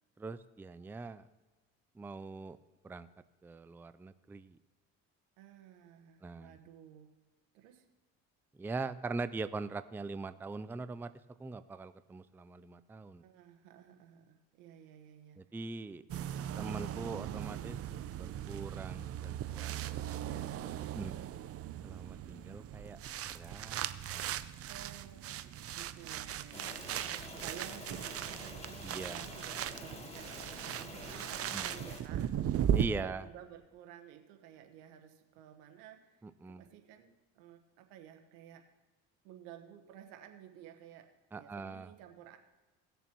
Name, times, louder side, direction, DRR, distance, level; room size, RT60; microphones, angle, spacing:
voice 1, 0.2-1.2 2.0-2.6 2.8-3.1 3.4-4.6 6.2-6.5 8.6-11.1 11.4-13.2 15.4-16.0 16.6-17.8 18.2-19.7 20.3-21.1 21.8-23.0 23.3-23.9 24.1-24.3 28.8-29.3 31.5-31.8 32.7-33.2 36.2-36.6 41.3-41.9, right 3 dB, 5° right, 12 dB, 0.4 m, -42 dB
voice 2, 5.4-7.2 7.5-7.9 13.2-15.4 24.7-38.6 39.2-42.4, right 10 dB, 90° right, 5 dB, 1.3 m, -54 dB
sound 1, 16.1-32.9, right 10 dB, 45° right, 0.6 m, -38 dB
sound 2, 26.5-32.0, left 2 dB, 20° left, 1.9 m, -48 dB
18.0 x 7.0 x 3.0 m, 1.2 s
supercardioid pair, 90°, 31 cm